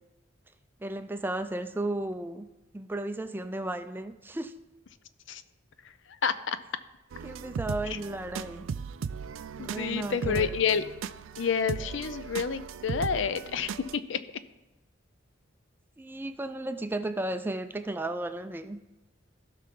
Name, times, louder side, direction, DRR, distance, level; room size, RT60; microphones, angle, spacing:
voice 1, 0.8-2.5 2.7-4.5 7.2-8.6 9.6-10.5 16.0-18.8, right 1 dB, 10° right, 8 dB, 0.4 m, -34 dB
voice 2, 6.2-6.6 7.9-8.0 9.6-10.8 11.4-14.2, left 6 dB, 65° left, 13 dB, 0.5 m, -29 dB
sound 1, 7.1-14.0, right 6 dB, 80° right, 0.4 m, -37 dB
16.5 x 5.7 x 3.8 m, 1.0 s
head